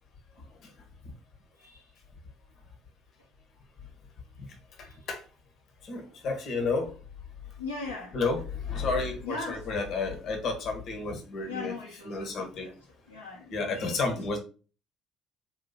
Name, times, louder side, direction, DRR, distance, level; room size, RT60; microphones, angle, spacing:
voice 1, 4.8-5.2 5.8-6.9 8.1-11.7 12.1-12.7 13.5-14.4, left 3 dB, 50° left, 1.2 m, -31 dB
voice 2, 7.6-8.2 9.2-9.7 11.4-12.7 13.1-14.0, left 3 dB, 85° left, 1.0 m, -39 dB
4.1 x 2.6 x 4.1 m
figure-of-eight pair, 55°, 0 cm